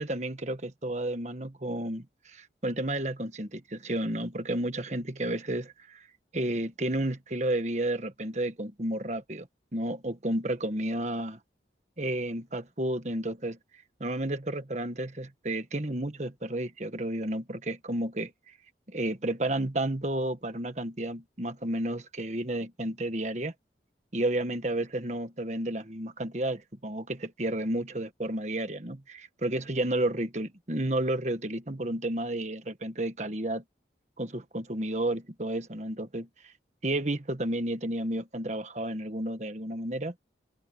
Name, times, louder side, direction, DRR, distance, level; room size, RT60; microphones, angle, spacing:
voice 1, 0.0-6.1 6.3-9.5 9.7-11.4 12.0-13.6 14.0-18.3 18.9-23.5 24.1-33.6 34.2-36.3 36.8-40.1, right 1 dB, 40° right, 1.5 m, -31 dB
open air
head